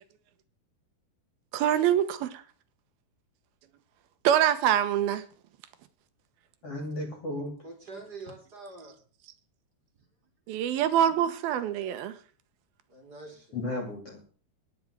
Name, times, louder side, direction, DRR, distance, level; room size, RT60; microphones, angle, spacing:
voice 1, 1.5-2.3 4.2-5.2 10.5-12.1, right 10 dB, 75° right, 2.8 m, -24 dB
voice 2, 6.6-7.5 13.5-14.3, left 2 dB, 40° left, 3.1 m, -34 dB
voice 3, 7.6-9.0 12.9-13.6, right 3 dB, 30° right, 2.5 m, -45 dB
10.5 x 9.1 x 7.4 m
omnidirectional pair, 4.6 m